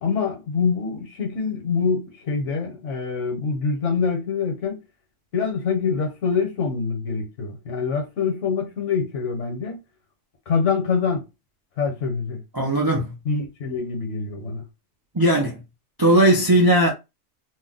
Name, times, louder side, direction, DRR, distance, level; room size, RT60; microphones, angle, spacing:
voice 1, 0.0-4.8 5.3-9.8 10.5-11.2 11.8-12.4 13.2-14.6, left 5 dB, 70° left, 1.3 m, -25 dB
voice 2, 12.5-13.1 15.1-15.6 16.0-16.9, right 1 dB, 35° right, 0.3 m, -18 dB
2.7 x 2.1 x 3.9 m
omnidirectional pair, 1.3 m